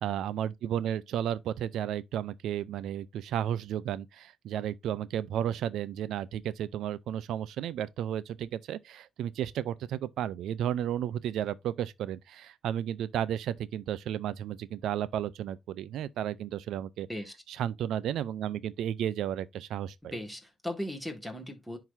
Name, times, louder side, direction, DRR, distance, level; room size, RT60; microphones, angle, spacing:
voice 1, 0.0-17.1 17.5-20.1, right 10 dB, 80° right, 0.5 m, -33 dB
voice 2, 20.1-21.8, left 1 dB, 5° right, 1.9 m, -37 dB
10.5 x 3.9 x 2.7 m
cardioid pair, 90°, 0 cm